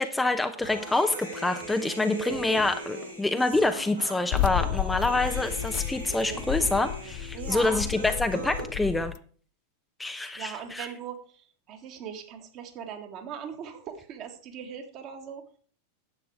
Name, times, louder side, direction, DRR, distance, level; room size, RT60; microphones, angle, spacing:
voice 1, 0.0-9.1 10.0-10.9, left 2 dB, 5° left, 7 dB, 0.7 m, -27 dB
Human voice, 0.6-8.6, right 2 dB, 85° right, 5.3 m, -39 dB
sound 1, 4.3-9.2, left 16 dB, 45° left, 0.4 m, -32 dB
voice 2, 7.3-7.8 10.4-15.4, right 8 dB, 40° right, 5 dB, 2.0 m, -39 dB
10.5 x 8.3 x 4.8 m, 0.43 s
figure-of-eight pair, 90°, 0 cm